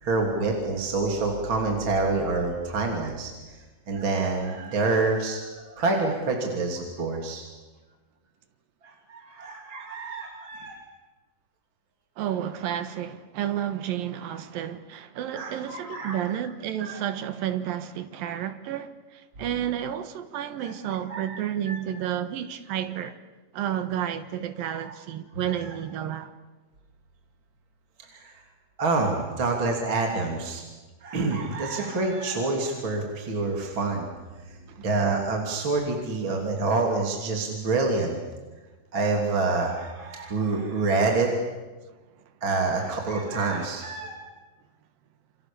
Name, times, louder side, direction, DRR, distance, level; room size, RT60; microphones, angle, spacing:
voice 1, 0.0-3.3 3.9-7.4 8.8-10.8 15.3-16.3 16.9-17.0 20.6-20.7 21.1-21.8 24.8-24.9 25.4-25.7 28.1-28.3 28.8-30.6 31.0-34.1 34.8-38.2 38.9-41.3 42.4-44.2, right 3 dB, 35° right, 3.5 m, -27 dB
voice 2, 12.2-23.2 23.5-26.3 34.7-34.9, right 10 dB, 85° right, 3.2 m, -31 dB
28.0 x 28.0 x 7.1 m
omnidirectional pair, 4.0 m